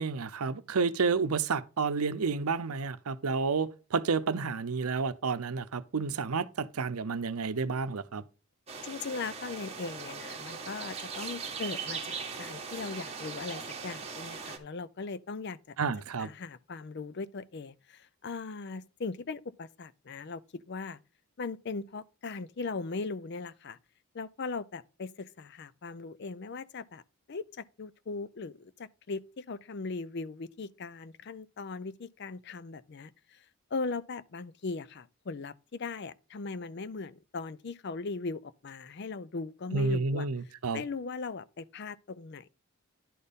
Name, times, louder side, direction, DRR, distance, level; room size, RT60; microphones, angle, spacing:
voice 1, 0.0-8.2 15.8-16.3 39.7-40.8, right 4 dB, 90° right, 0.7 m, -30 dB
sound 1, 8.7-14.6, right 5 dB, 30° right, 1.5 m, -40 dB
voice 2, 8.8-15.8 16.2-21.0 21.4-23.8 24.1-27.0 27.3-33.4 33.7-40.3 40.7-42.5, left 4 dB, 50° left, 0.5 m, -39 dB
11.0 x 4.4 x 5.1 m
head